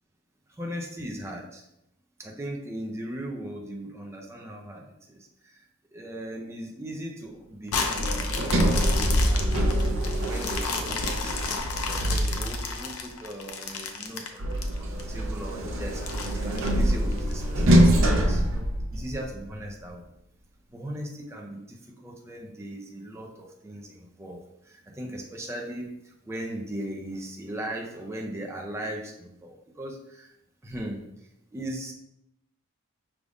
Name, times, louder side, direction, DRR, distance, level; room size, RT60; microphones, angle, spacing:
voice 1, 0.5-1.7 2.2-5.6 5.9-9.6 10.1-20.1 20.7-30.3 30.6-31.9, right 1 dB, 10° right, 0 dB, 0.5 m, -38 dB
sound 1, 7.7-15.0 15.5-15.6 16.0-17.3 17.9-18.0, left 5 dB, 80° left, 0.6 m, -33 dB
Sliding door, 8.0-12.8 14.4-19.3, equal, 60° right, 0.6 m, -24 dB
5.0 x 3.5 x 2.5 m, 0.82 s
head